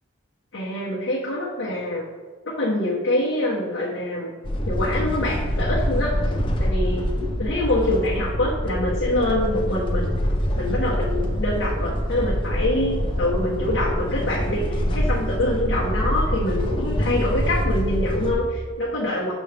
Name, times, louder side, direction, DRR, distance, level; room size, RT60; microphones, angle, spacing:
voice 1, 0.5-2.1 2.4-4.4 4.7-6.2 6.6-7.1 7.4-10.1 10.6-19.3, left 1 dB, 60° left, -6 dB, 1.1 m, -25 dB
sound 1, 4.4-18.3, equal, 25° left, 0.7 m, -25 dB
6.8 x 5.4 x 3.4 m, 1.4 s
head